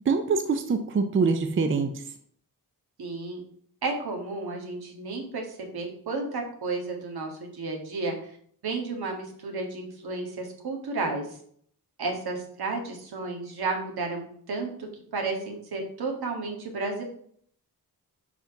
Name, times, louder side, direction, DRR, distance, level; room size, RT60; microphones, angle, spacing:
voice 1, 0.1-1.9, right 4 dB, 35° right, 7 dB, 0.5 m, -24 dB
voice 2, 3.0-3.4 3.8-8.3 8.6-11.3 12.0-14.9 15.1-17.0, right 3 dB, 80° right, 2 dB, 1.8 m, -32 dB
5.2 x 4.9 x 5.8 m, 0.62 s
wide cardioid pair, 170°, 37 cm